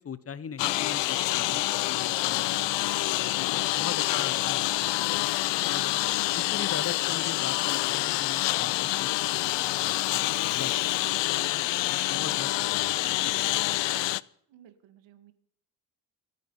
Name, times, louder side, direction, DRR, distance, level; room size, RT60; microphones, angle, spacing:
voice 1, 0.0-2.7 3.0-5.3 5.6-5.9 6.3-10.7 12.1-14.1, left 7 dB, 30° left, 16 dB, 0.9 m, -41 dB
Engine, 0.6-14.2, left 18 dB, 70° left, 0.6 m, -27 dB
voice 2, 14.5-15.3, right 10 dB, 90° right, 10 dB, 1.8 m, -55 dB
27.5 x 9.5 x 5.5 m, 0.64 s
cardioid pair, 115°, 44 cm